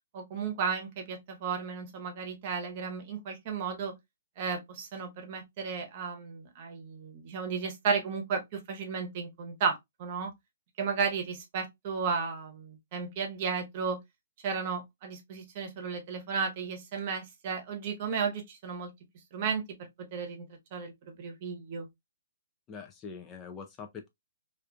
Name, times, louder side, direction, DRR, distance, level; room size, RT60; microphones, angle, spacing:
voice 1, 0.1-3.9 4.4-10.3 10.8-14.0 14.4-18.9 19.3-19.6 20.0-20.4 20.7-21.9, right 5 dB, 40° right, 0.8 m, -34 dB
voice 2, 22.7-24.1, left 5 dB, 20° left, 0.3 m, -43 dB
2.4 x 2.4 x 2.3 m
hypercardioid pair, 150°, 0 cm